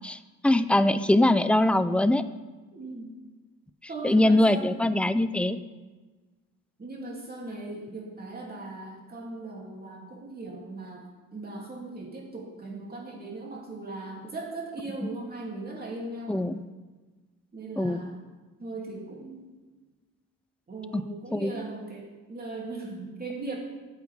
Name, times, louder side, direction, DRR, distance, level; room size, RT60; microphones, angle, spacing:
voice 1, 0.0-2.2 4.0-5.6 16.3-16.6 17.8-18.0 20.9-21.1 21.3-21.5, left 1 dB, 5° left, 12 dB, 0.4 m, -22 dB
voice 2, 2.7-3.1 3.9-4.8 6.8-11.0 11.3-16.4 17.5-18.2 18.6-19.6 20.7-23.6, right 2 dB, 30° right, -2 dB, 2.9 m, -38 dB
13.0 x 8.0 x 3.6 m, 1.3 s
cardioid pair, 90°, 30 cm